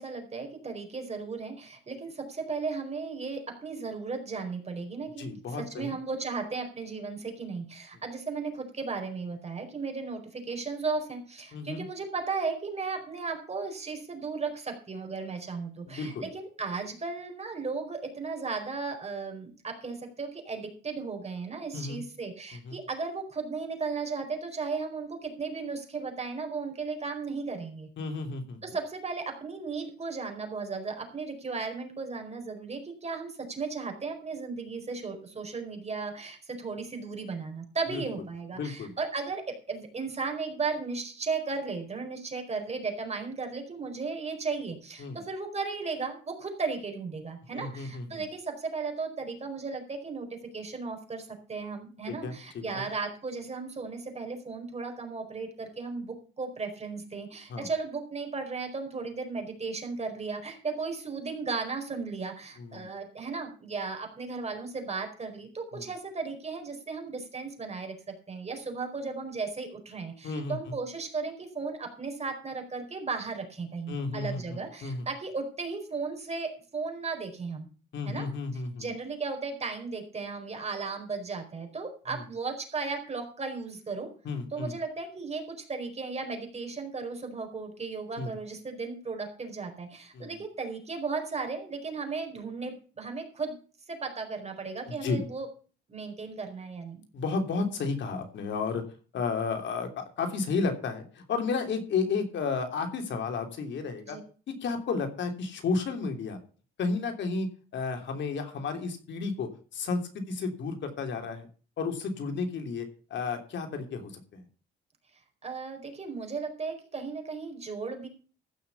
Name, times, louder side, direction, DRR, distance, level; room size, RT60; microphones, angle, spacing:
voice 1, 0.0-5.3 5.5-27.9 28.6-77.7 78.0-84.1 84.5-93.6 93.9-95.5 95.9-97.0 104.0-104.2 115.4-118.1, right 4 dB, 35° right, 4 dB, 4.7 m, -35 dB
voice 2, 5.2-5.9 11.5-11.8 15.9-16.3 21.7-22.0 22.5-22.8 28.0-28.6 37.9-38.0 38.6-38.9 45.0-45.2 47.5-48.2 52.1-52.9 57.5-57.7 62.6-62.9 65.7-65.9 70.2-70.7 73.9-75.1 77.9-78.9 82.1-82.2 84.2-84.7 88.2-88.3 90.1-90.4 94.9-95.2 97.1-98.8 99.1-104.2 104.5-106.4 106.8-111.5 111.8-114.5, left 4 dB, 65° left, 5 dB, 3.2 m, -32 dB
15.0 x 6.3 x 7.1 m, 0.39 s
cardioid pair, 90°, 20 cm